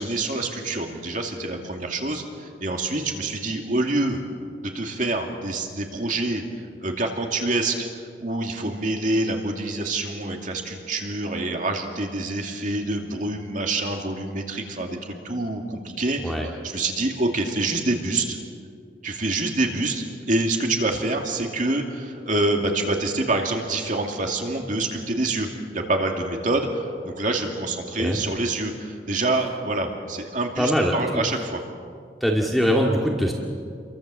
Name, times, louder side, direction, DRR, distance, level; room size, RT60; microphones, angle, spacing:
voice 1, 0.0-4.2 4.6-6.4 6.8-7.9 8.2-18.4 19.0-25.5 25.7-31.6, right 2 dB, 45° right, 2 dB, 2.5 m, -26 dB
voice 2, 30.6-30.9 32.2-33.3, equal, ahead, -2 dB, 2.1 m, -22 dB
30.0 x 23.5 x 7.7 m, 2.2 s
head